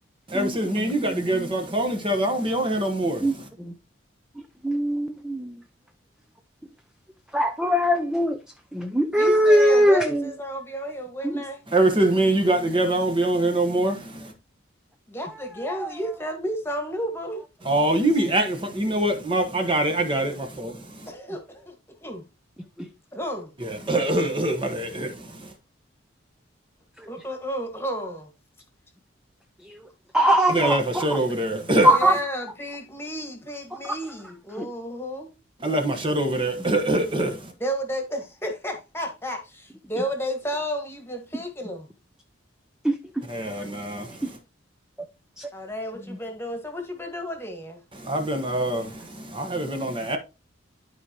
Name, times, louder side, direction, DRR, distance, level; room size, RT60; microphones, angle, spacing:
voice 1, 0.3-3.5 11.7-14.3 17.6-21.1 23.6-25.5 30.5-31.9 35.6-37.5 43.3-44.4 47.9-50.2, right 1 dB, 25° right, 1.2 m, -24 dB
voice 2, 1.1-1.5 3.2-3.3 4.6-5.6 7.3-8.4 8.7-10.2 11.2-11.4 15.8-15.9 30.1-31.1 31.8-32.2 33.8-33.9 42.8-42.9 45.4-45.5, equal, 5° right, 0.5 m, -21 dB
voice 3, 9.2-11.6 15.1-17.4 20.2-20.4 21.1-21.7 22.0-22.2 23.1-23.5 27.1-28.3 31.7-35.3 37.6-41.9 43.5-43.7 45.5-47.8, equal, 10° left, 1.6 m, -32 dB
12.0 x 4.9 x 2.9 m
head